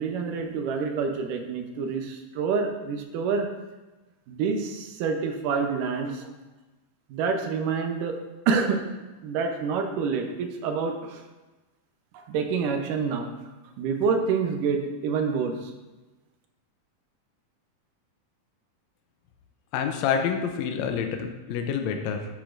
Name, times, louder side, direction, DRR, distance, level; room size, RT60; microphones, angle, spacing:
voice 1, 0.0-3.5 4.3-6.3 7.1-8.2 8.5-8.8 9.2-11.2 12.1-13.3 13.8-15.7, right 5 dB, 85° right, 4 dB, 2.4 m, -27 dB
voice 2, 19.7-22.3, left 7 dB, 75° left, 5 dB, 1.8 m, -27 dB
10.5 x 8.2 x 2.6 m, 1.2 s
omnidirectional pair, 3.7 m